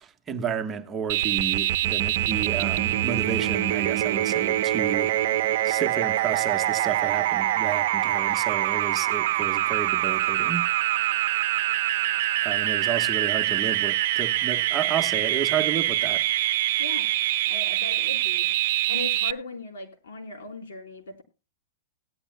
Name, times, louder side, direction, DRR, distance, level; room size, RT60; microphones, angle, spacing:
voice 1, 0.0-5.1 5.6-10.7 12.4-16.2, right 7 dB, 20° right, 1.2 m, -31 dB
sound 1, 1.1-19.3, right 14 dB, 55° right, 0.8 m, -24 dB
voice 2, 5.2-5.6 16.8-17.1 17.5-18.5 18.9-21.2, left 3 dB, 80° left, 4.1 m, -38 dB
18.5 x 11.5 x 2.2 m
hypercardioid pair, 145°, 0 cm